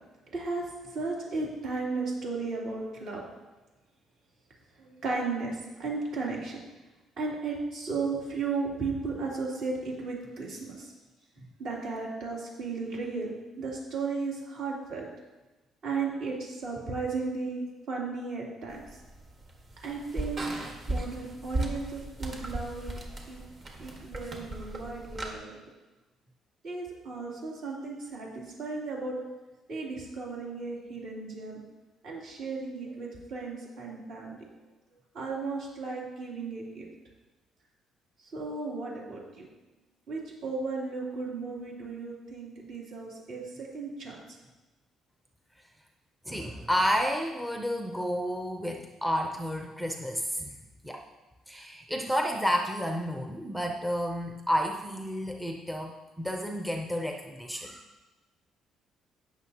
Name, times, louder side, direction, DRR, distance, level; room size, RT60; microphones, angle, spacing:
voice 1, 0.3-3.2 4.8-6.6 7.2-10.9 11.4-15.0 15.8-18.8 19.8-20.4 20.9-22.9 23.3-23.4 23.8-25.7 26.6-29.2 29.7-31.6 32.0-34.4 35.1-36.9 38.3-39.5 40.1-44.4, right 4 dB, 60° right, -4 dB, 3.1 m, -35 dB
sound 1, 18.7-25.3, right 2 dB, 35° right, 1.5 m, -37 dB
voice 2, 46.3-50.5 50.8-51.0 51.5-57.9, equal, 5° right, 2 dB, 0.6 m, -31 dB
18.0 x 6.4 x 2.9 m, 1.1 s
cardioid pair, 155°, 0 cm